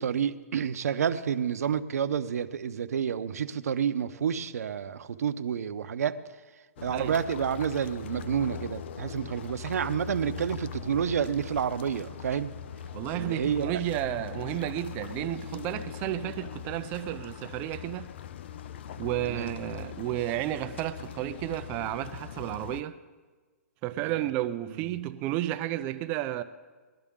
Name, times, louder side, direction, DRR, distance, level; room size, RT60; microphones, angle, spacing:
voice 1, 0.0-6.2 6.8-12.5 13.1-13.7 19.2-19.5 24.1-24.2 24.9-25.0, right 8 dB, 70° right, 0.8 m, -29 dB
sound 1, 6.8-22.8, left 8 dB, 45° left, 0.4 m, -41 dB
voice 2, 12.9-18.1 19.0-23.0 23.8-26.4, right 14 dB, 20° right, 0.4 m, -32 dB
21.0 x 12.5 x 3.7 m
hypercardioid pair, 165°, 9 cm